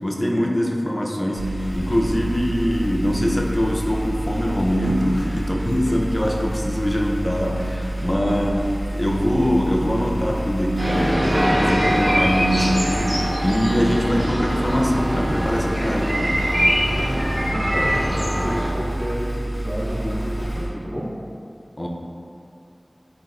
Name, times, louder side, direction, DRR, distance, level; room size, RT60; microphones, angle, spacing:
voice 1, 0.0-11.2 11.5-16.5 21.8-21.9, equal, 35° left, -1 dB, 0.3 m, -23 dB
sound 1, 1.3-20.7, right 1 dB, 15° right, 0.9 m, -28 dB
voice 2, 5.2-5.5 8.0-8.3 16.7-21.2, equal, 40° right, -6 dB, 0.6 m, -31 dB
sound 2, 10.8-18.7, equal, 65° right, 0.9 m, -23 dB
3.5 x 2.3 x 2.2 m, 2.4 s
wide cardioid pair, 50°, 0 cm